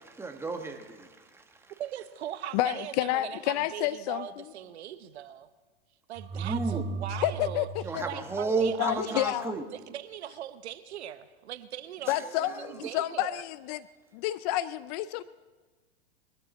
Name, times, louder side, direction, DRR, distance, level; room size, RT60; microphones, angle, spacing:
voice 1, 0.0-1.7 6.3-6.9 7.8-9.7 12.1-12.7, right 4 dB, 5° right, 5 dB, 1.2 m, -33 dB
voice 2, 1.8-5.5 6.1-7.7 8.0-9.3 9.7-13.4, right 11 dB, 75° right, 13 dB, 1.0 m, -40 dB
voice 3, 2.5-4.4 7.2-8.1 8.8-9.5 12.1-13.8 14.1-15.2, left 14 dB, 40° left, 17 dB, 0.4 m, -30 dB
sound 1, 6.2-9.0, right 4 dB, 30° right, 1.1 m, -37 dB
22.0 x 12.5 x 4.1 m, 1.3 s
hypercardioid pair, 125°, 33 cm